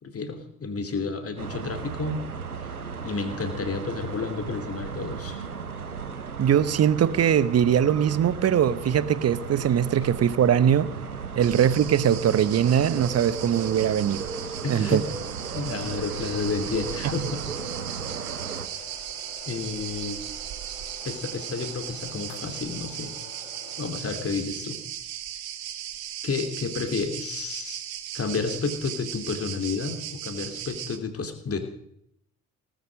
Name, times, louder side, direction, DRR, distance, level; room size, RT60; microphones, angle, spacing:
voice 1, 0.0-2.3 2.6-2.7 3.0-5.5 14.6-15.0 15.5-17.4 19.5-20.2 21.0-23.1 23.8-24.8 26.2-27.8 28.1-31.6, left 4 dB, 30° left, 2.9 m, -31 dB
sound 1, 1.4-18.7, right 5 dB, 90° right, 0.9 m, -36 dB
voice 2, 6.4-10.9 11.3-14.2 14.7-15.0, right 9 dB, 35° right, 1.0 m, -21 dB
sound 2, 11.4-31.0, right 11 dB, 55° right, 1.7 m, -37 dB
sound 3, 13.5-23.9, left 6 dB, 70° left, 2.9 m, -49 dB
18.5 x 14.0 x 5.2 m
figure-of-eight pair, 50°, 43 cm